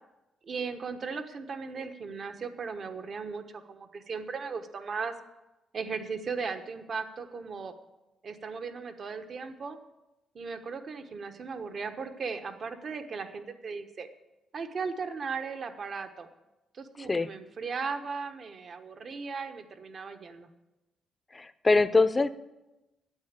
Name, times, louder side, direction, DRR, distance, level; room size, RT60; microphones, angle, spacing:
voice 1, 0.4-5.1 5.7-7.7 8.2-9.8 10.3-14.1 14.5-16.3 16.7-20.5, right 5 dB, 50° right, 8 dB, 1.2 m, -37 dB
voice 2, 21.3-22.3, left 3 dB, 20° left, 13 dB, 0.7 m, -23 dB
9.6 x 8.0 x 9.5 m, 1.0 s
cardioid pair, 90°, 0 cm